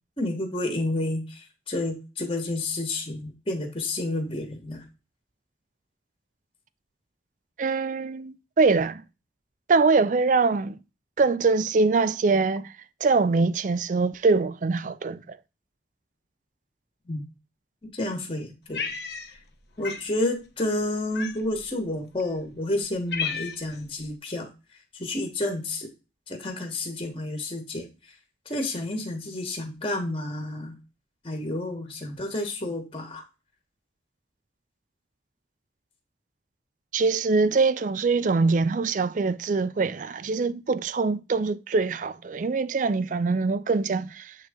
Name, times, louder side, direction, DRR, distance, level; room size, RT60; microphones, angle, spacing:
voice 1, 0.2-4.8 17.1-17.3 17.8-18.8 19.8-24.5 24.9-25.9 26.3-27.9 28.4-30.8 31.2-33.2, left 2 dB, 30° left, 1.2 m, -30 dB
voice 2, 7.6-9.0 9.7-10.8 11.2-12.7 13.0-15.4 36.9-44.4, right 4 dB, 45° right, 0.4 m, -23 dB
Cat, 18.7-19.5 19.8-20.1 21.1-21.7 22.4-22.5 22.8-23.8, left 6 dB, 65° left, 0.8 m, -33 dB
7.4 x 3.8 x 3.5 m
head